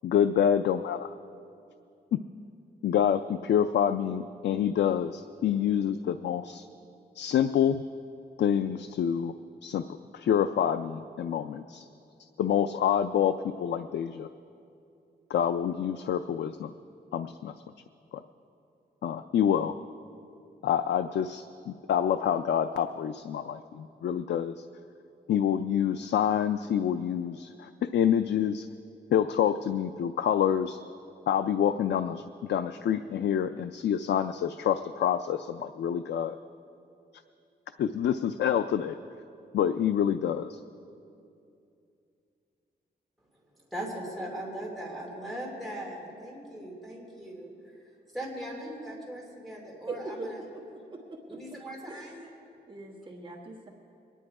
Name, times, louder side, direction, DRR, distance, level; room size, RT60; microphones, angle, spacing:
voice 1, 0.0-1.1 2.1-2.2 2.8-6.7 7.2-7.8 8.4-9.3 9.6-9.8 10.1-11.9 12.4-14.3 15.3-16.7 17.1-17.5 18.1-18.2 19.0-19.7 20.6-24.6 25.3-28.7 29.1-30.8 31.3-32.2 32.5-36.4 37.8-39.0 39.5-40.6, left 9 dB, 80° left, 10 dB, 0.4 m, -27 dB
voice 2, 43.7-47.5 48.1-50.4 51.3-52.2, right 1 dB, ahead, -3 dB, 2.9 m, -39 dB
voice 3, 49.9-51.4 51.9-52.1 52.7-53.7, right 3 dB, 30° right, -3 dB, 1.3 m, -41 dB
23.0 x 10.0 x 4.8 m, 2.6 s
wide cardioid pair, 175°, 18 cm